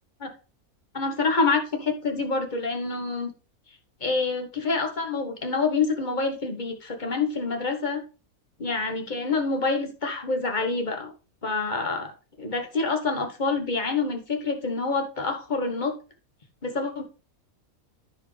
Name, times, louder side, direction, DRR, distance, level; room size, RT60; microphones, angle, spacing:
voice 1, 0.9-3.3 4.0-8.0 8.6-11.1 11.4-12.1 12.4-16.0 16.6-17.0, left 4 dB, 35° left, 3 dB, 1.5 m, -27 dB
14.0 x 4.7 x 3.3 m, 0.34 s
omnidirectional pair, 1.5 m